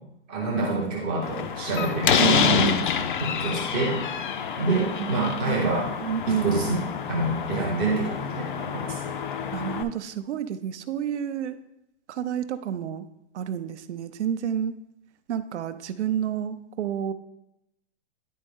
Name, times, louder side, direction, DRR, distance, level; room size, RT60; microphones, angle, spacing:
voice 1, 0.3-2.1 3.2-4.0 4.6-5.9 6.3-6.8 7.1-9.0, right 2 dB, 10° right, -3 dB, 0.5 m, -27 dB
Slam, 1.2-9.8, left 7 dB, 45° left, 0.4 m, -27 dB
voice 2, 2.2-2.9 4.7-5.7 6.0-6.8 9.5-11.6 12.2-13.0 13.3-14.7 15.3-17.1, right 9 dB, 75° right, 12 dB, 0.6 m, -29 dB
10.0 x 4.2 x 3.5 m, 0.84 s
hypercardioid pair, 175°, 35 cm